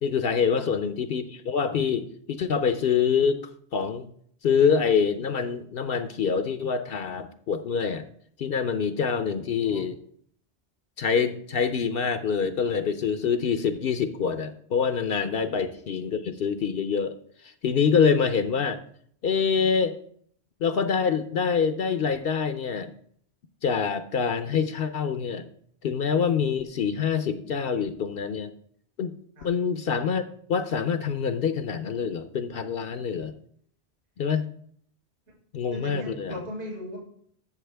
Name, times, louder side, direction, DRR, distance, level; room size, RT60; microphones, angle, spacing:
voice 1, 0.0-3.4 3.7-4.1 4.4-8.1 8.4-10.0 11.0-17.2 17.4-18.8 19.2-20.0 20.6-22.9 23.6-25.5 25.8-28.5 29.0-29.1 29.4-30.2 30.5-33.3 34.2-34.5 35.5-36.4, left 6 dB, 60° left, 10 dB, 0.8 m, -25 dB
voice 2, 9.1-9.8 15.3-15.4 29.4-29.5 35.3-35.4 35.7-37.0, equal, 65° right, -3 dB, 5.4 m, -38 dB
13.5 x 7.1 x 3.4 m, 0.63 s
omnidirectional pair, 1.1 m